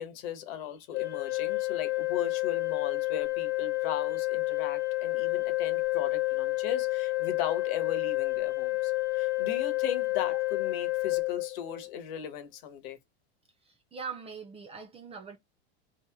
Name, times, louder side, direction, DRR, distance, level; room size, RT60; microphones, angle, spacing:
voice 1, 0.0-13.0, left 9 dB, 55° left, 1.1 m, -37 dB
Organ, 0.9-12.0, left 20 dB, 30° left, 0.7 m, -30 dB
voice 2, 13.6-15.4, right 5 dB, 20° right, 0.4 m, -42 dB
2.9 x 2.8 x 3.5 m
supercardioid pair, 125°, 34 cm